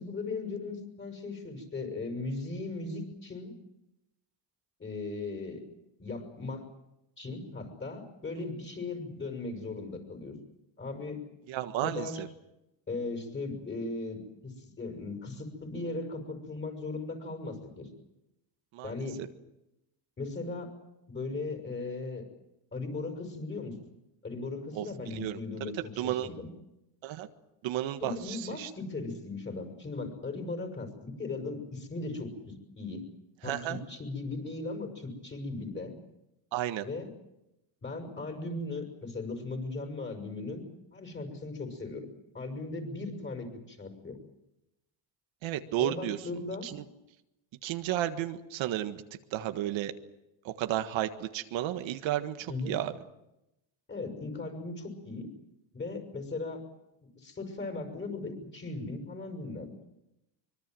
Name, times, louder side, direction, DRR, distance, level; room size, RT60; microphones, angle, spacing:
voice 1, 0.0-3.5 4.8-5.6 6.0-6.7 7.2-10.3 10.8-11.2 11.8-12.2 12.9-17.9 18.8-19.2 20.2-20.7 21.1-22.2 22.7-23.8 24.2-26.5 28.0-33.1 33.4-36.0 36.8-37.1 37.8-40.6 40.9-42.1 42.3-44.2 45.8-46.7 52.5-52.8 53.9-55.3 55.7-56.6 57.2-59.9, left 3 dB, 25° left, 5 dB, 6.1 m, -38 dB
voice 2, 11.5-12.3 18.7-18.9 24.7-24.8 25.1-25.4 26.0-26.3 27.0-27.3 27.6-28.7 33.4-33.8 36.5-36.8 45.4-46.2 46.6-46.8 47.6-49.0 49.3-49.9 50.4-52.9, right 13 dB, 75° right, 8 dB, 1.7 m, -32 dB
24.5 x 23.0 x 7.7 m, 0.90 s
cardioid pair, 135°, 47 cm